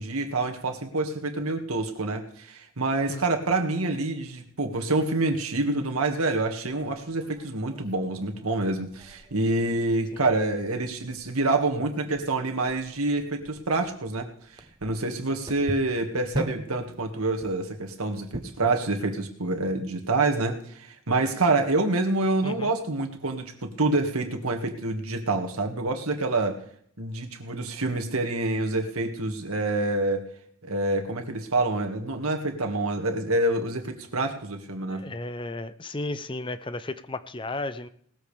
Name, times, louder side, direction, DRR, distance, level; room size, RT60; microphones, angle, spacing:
voice 1, 0.0-26.6 27.0-30.3 30.6-35.0, right 2 dB, 90° right, 5 dB, 2.0 m, -27 dB
sound 1, 7.1-18.8, right 1 dB, 20° right, 0.8 m, -42 dB
voice 2, 34.9-37.9, left 2 dB, 25° left, 12 dB, 0.6 m, -34 dB
19.0 x 14.0 x 3.4 m, 0.63 s
head